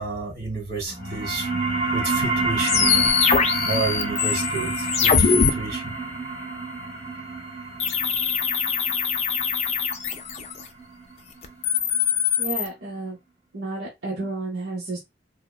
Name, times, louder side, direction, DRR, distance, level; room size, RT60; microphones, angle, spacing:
voice 1, 0.0-1.5 1.9-3.1 3.6-5.9, right 3 dB, 60° right, 1.6 m, -30 dB
sound 1, 0.9-12.0, right 3 dB, 30° right, 0.8 m, -29 dB
sound 2, 2.6-5.5 7.8-10.6 11.4-12.7, left 6 dB, 35° left, 0.4 m, -22 dB
voice 2, 12.4-13.2 13.5-15.0, right 3 dB, 80° right, 0.8 m, -31 dB
3.4 x 2.0 x 2.2 m
head